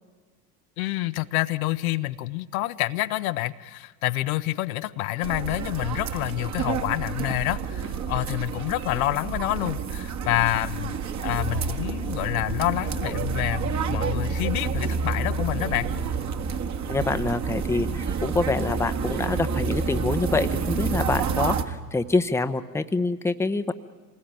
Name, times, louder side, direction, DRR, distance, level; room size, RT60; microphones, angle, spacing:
voice 1, 0.8-10.9 11.2-15.9, left 16 dB, 60° left, 12 dB, 0.9 m, -28 dB
sound 1, 5.2-21.6, right 5 dB, 35° right, 1.7 m, -29 dB
voice 2, 16.9-23.7, left 3 dB, 5° left, 10 dB, 0.9 m, -26 dB
26.5 x 19.5 x 9.1 m, 1.4 s
figure-of-eight pair, 75°, 48 cm